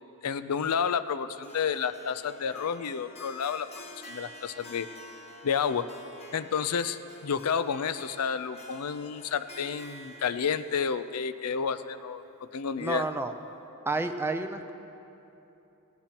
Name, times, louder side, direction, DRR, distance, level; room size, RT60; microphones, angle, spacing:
voice 1, 0.2-3.7 4.0-4.9 5.4-5.9 6.3-12.2 12.5-13.0, left 6 dB, 85° left, 13 dB, 0.5 m, -30 dB
Harp, 1.4-12.7, left 1 dB, 30° left, 0.8 m, -49 dB
voice 2, 12.8-13.3 13.9-14.7, right 2 dB, 10° right, 6 dB, 0.6 m, -30 dB
18.5 x 16.0 x 2.9 m, 2.9 s
head